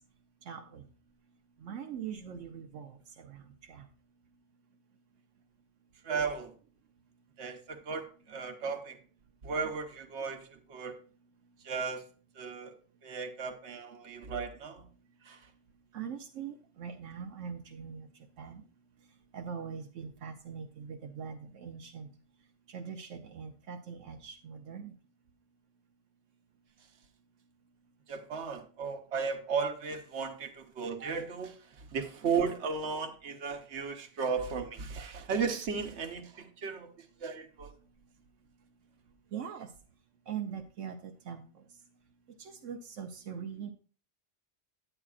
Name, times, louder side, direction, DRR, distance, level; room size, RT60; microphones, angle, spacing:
voice 1, 0.5-0.8 1.6-3.9 15.9-18.1 18.4-18.6 19.3-22.1 22.7-24.9 39.3-39.7 40.3-41.4 42.4-43.7, right 7 dB, 85° right, 4 dB, 1.1 m, -42 dB
voice 2, 6.0-6.5 7.4-9.0 9.4-11.0 11.6-12.0 12.4-12.7 13.0-14.8 15.3-15.4 28.1-36.9 37.2-37.7, right 5 dB, 65° right, 5 dB, 1.3 m, -35 dB
9.8 x 9.0 x 2.4 m, 0.39 s
omnidirectional pair, 1.2 m